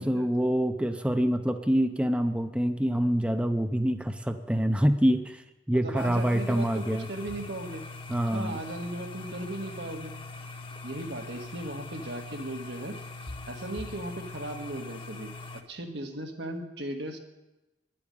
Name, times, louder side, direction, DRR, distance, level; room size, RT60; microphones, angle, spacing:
voice 1, 0.0-7.1 8.1-8.6, equal, 5° right, 7 dB, 0.6 m, -26 dB
voice 2, 5.8-7.9 8.3-10.1 10.8-13.0 13.5-17.2, right 1 dB, 80° right, 3 dB, 1.7 m, -37 dB
sound 1, 6.0-15.6, left 3 dB, 30° left, 0.9 m, -42 dB
10.5 x 8.5 x 10.0 m, 1.0 s
head